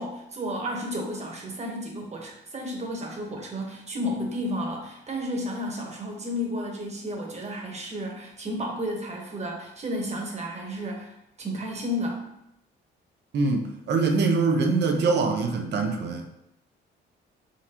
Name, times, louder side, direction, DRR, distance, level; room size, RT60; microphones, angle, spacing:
voice 1, 0.0-12.2, equal, 35° right, 0 dB, 1.2 m, -32 dB
voice 2, 13.3-16.3, right 4 dB, 60° right, 4 dB, 0.7 m, -24 dB
4.5 x 3.8 x 3.0 m, 0.81 s
cardioid pair, 90°, 20 cm